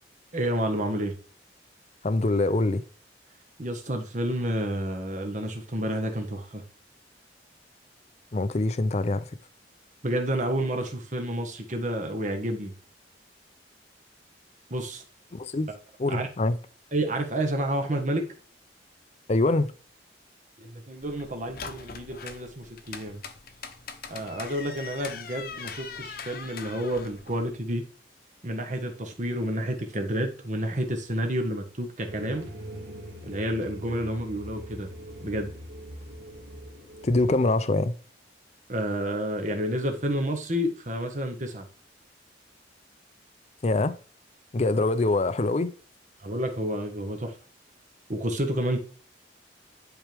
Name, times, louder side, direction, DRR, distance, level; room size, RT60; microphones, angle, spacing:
voice 1, 0.3-1.1 3.6-6.6 10.0-12.7 14.7-15.0 16.1-16.3 16.9-18.2 20.6-23.2 24.1-27.8 28.4-32.5 33.2-34.9 35.2-35.5 38.7-41.7 46.2-47.4 48.1-48.8, right 1 dB, 40° right, 1.5 m, -30 dB
voice 2, 2.0-2.8 8.3-9.3 15.3-15.7 16.0-16.6 19.3-19.7 37.0-37.9 43.6-44.0 44.5-45.7, left 2 dB, 35° left, 0.5 m, -24 dB
sound 1, 21.0-27.5, left 5 dB, 50° left, 0.9 m, -42 dB
sound 2, 32.1-37.3, equal, 90° right, 2.2 m, -42 dB
10.0 x 4.7 x 3.5 m
head